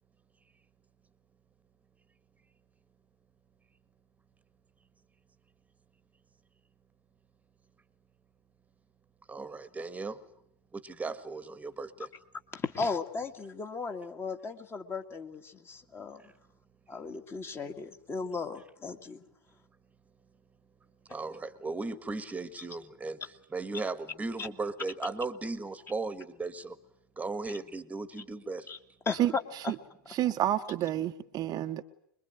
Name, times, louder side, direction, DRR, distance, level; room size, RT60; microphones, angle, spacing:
voice 1, 9.3-10.2 10.7-12.1 21.1-26.8 27.2-28.7, right 3 dB, 10° right, 15 dB, 1.6 m, -37 dB
voice 2, 12.5-16.2 16.9-19.2 24.4-24.5 28.7-28.8 29.1-29.2, left 4 dB, 20° left, 7 dB, 2.1 m, -36 dB
voice 3, 29.2-29.7 30.1-31.8, right 12 dB, 35° right, 7 dB, 1.0 m, -30 dB
25.0 x 22.0 x 9.3 m, 0.69 s
figure-of-eight pair, 95°, 12 cm